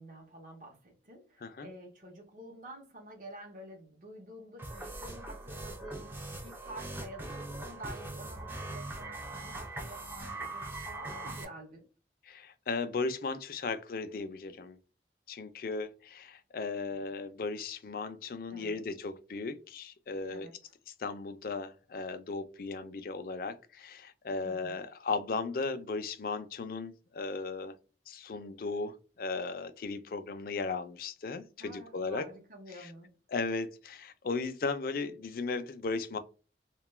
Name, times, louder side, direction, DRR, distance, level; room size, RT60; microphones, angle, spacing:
voice 1, 0.0-11.8 18.5-18.8 20.3-20.6 24.4-24.9 31.6-33.1, right 1 dB, 45° right, 0.7 m, -49 dB
sound 1, 4.6-11.4, right 2 dB, 10° right, 0.4 m, -41 dB
voice 2, 12.3-14.8 15.3-20.5 21.0-27.7 28.1-32.3 33.3-36.2, left 4 dB, 55° left, 0.4 m, -36 dB
2.2 x 2.2 x 3.1 m
head